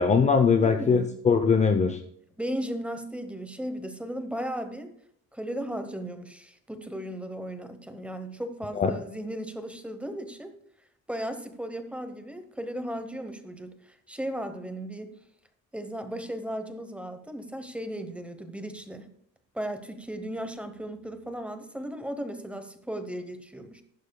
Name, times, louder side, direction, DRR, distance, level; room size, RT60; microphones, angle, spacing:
voice 1, 0.0-2.0 8.8-8.9, left 5 dB, 20° left, 7 dB, 0.6 m, -21 dB
voice 2, 0.6-1.1 2.4-4.9 5.3-10.5 11.1-15.1 15.7-19.1 19.5-23.8, right 1 dB, 5° right, 8 dB, 0.9 m, -36 dB
15.0 x 11.5 x 2.3 m, 0.69 s
cardioid pair, 170°, 33 cm